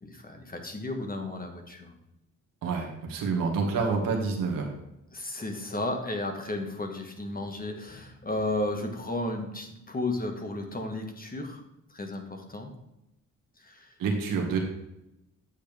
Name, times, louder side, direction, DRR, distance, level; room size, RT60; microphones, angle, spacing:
voice 1, 0.0-2.0 5.1-11.6 11.9-12.7 13.6-13.9, left 2 dB, 25° left, 4 dB, 1.7 m, -33 dB
voice 2, 2.6-4.7 14.0-14.6, right 4 dB, 80° right, 1 dB, 1.9 m, -28 dB
9.3 x 6.6 x 3.5 m, 0.88 s
cardioid pair, 70°, 33 cm